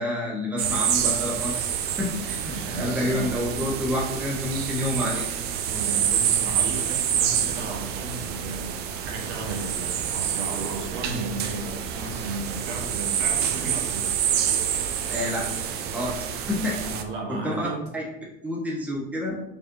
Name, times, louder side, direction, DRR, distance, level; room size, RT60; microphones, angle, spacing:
voice 1, 0.0-1.7 2.0-5.3 15.1-15.5 15.9-16.8 17.3-17.7 17.9-18.0 18.4-19.4, left 1 dB, 5° right, -3 dB, 0.9 m, -28 dB
sound 1, 0.6-17.0, right 9 dB, 25° right, 0.3 m, -27 dB
voice 2, 2.5-3.3 5.7-14.1 16.8-17.8, right 3 dB, 60° right, 0 dB, 1.3 m, -35 dB
4.8 x 3.6 x 2.6 m, 0.83 s
figure-of-eight pair, 80°, 41 cm